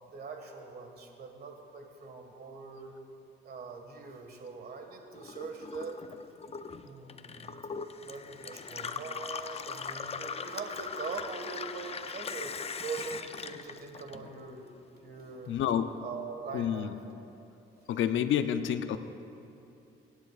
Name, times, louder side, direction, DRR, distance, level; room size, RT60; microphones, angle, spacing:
voice 1, 0.1-3.0 3.4-6.0 6.8-7.6 8.0-14.6 15.0-15.6 16.0-16.9, right 5 dB, 50° right, 3 dB, 1.7 m, -42 dB
Gurgling / Water tap faucet / Sink (filling or washing), 5.1-14.7 15.0-15.9, left 5 dB, 30° left, 0.5 m, -40 dB
voice 2, 15.5-15.9 16.5-16.9 17.9-19.0, left 9 dB, 75° left, 10 dB, 0.6 m, -28 dB
23.0 x 10.5 x 2.4 m, 2.9 s
cardioid pair, 90°, 20 cm